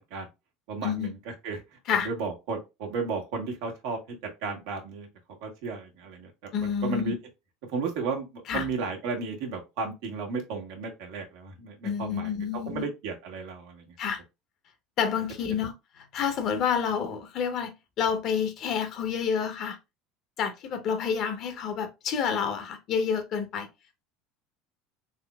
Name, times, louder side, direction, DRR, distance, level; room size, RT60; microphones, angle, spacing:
voice 1, 0.7-5.1 5.4-6.3 6.6-7.2 7.7-12.3 12.6-13.8, right 4 dB, 75° right, 1.3 m, -34 dB
voice 2, 6.5-7.1 8.5-8.6 11.8-12.8 14.0-14.2 15.0-15.7 16.1-19.8 20.4-23.7, left 7 dB, 50° left, 0.9 m, -29 dB
3.7 x 3.0 x 2.3 m
supercardioid pair, 105°, 0 cm